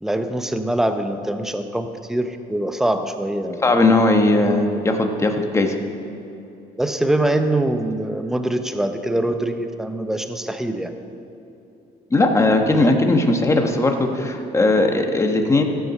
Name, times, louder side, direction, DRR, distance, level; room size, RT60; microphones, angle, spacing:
voice 1, 0.0-3.7 6.8-10.9 12.7-13.0, right 1 dB, ahead, 7 dB, 0.7 m, -23 dB
voice 2, 3.6-5.8 12.1-15.6, left 2 dB, 15° left, 4 dB, 1.2 m, -18 dB
14.5 x 7.9 x 6.5 m, 2.8 s
cardioid pair, 110°, 17 cm